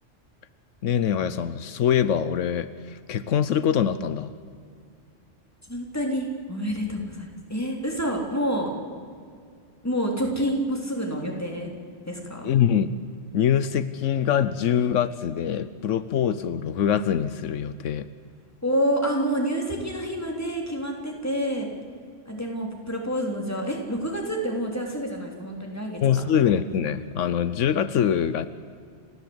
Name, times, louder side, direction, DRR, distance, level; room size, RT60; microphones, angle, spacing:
voice 1, 0.8-4.3 12.4-12.9 13.3-18.1 26.0-28.5, left 9 dB, 85° left, 14 dB, 1.1 m, -24 dB
voice 2, 5.6-8.7 9.8-11.7 12.1-12.5 18.6-21.7 22.3-26.2, equal, 10° left, 0 dB, 3.2 m, -28 dB
30.0 x 14.0 x 7.9 m, 2.2 s
omnidirectional pair, 1.3 m